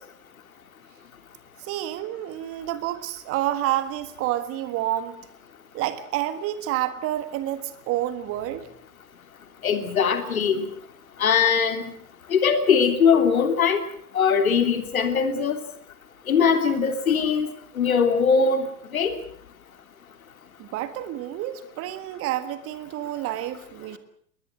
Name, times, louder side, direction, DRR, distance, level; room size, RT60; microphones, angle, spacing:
voice 1, 1.6-5.2 5.7-8.7 20.6-24.0, right 13 dB, 30° right, 13 dB, 1.6 m, -29 dB
voice 2, 9.6-10.6 11.2-11.8 12.3-13.8 14.1-15.6 16.3-18.7 18.9-19.2, left 6 dB, 65° left, 8 dB, 3.2 m, -21 dB
22.0 x 20.0 x 7.6 m, 0.62 s
figure-of-eight pair, 95°, 45 cm